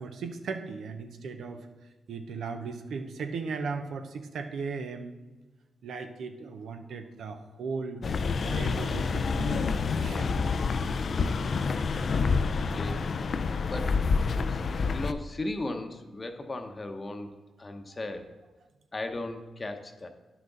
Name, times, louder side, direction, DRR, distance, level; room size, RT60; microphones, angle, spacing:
voice 1, 0.0-1.7 2.1-5.1 5.8-8.0 8.4-10.6 13.5-13.6 17.9-18.0, right 4 dB, 75° right, 7 dB, 0.8 m, -37 dB
sound 1, 8.0-15.1, left 4 dB, 55° left, 0.4 m, -28 dB
voice 2, 12.3-13.0 13.3-14.0 14.5-14.6 14.9-18.3 18.9-20.1, left 2 dB, 30° left, 6 dB, 0.9 m, -37 dB
11.0 x 6.0 x 3.9 m, 1.2 s
cardioid pair, 75°, 0 cm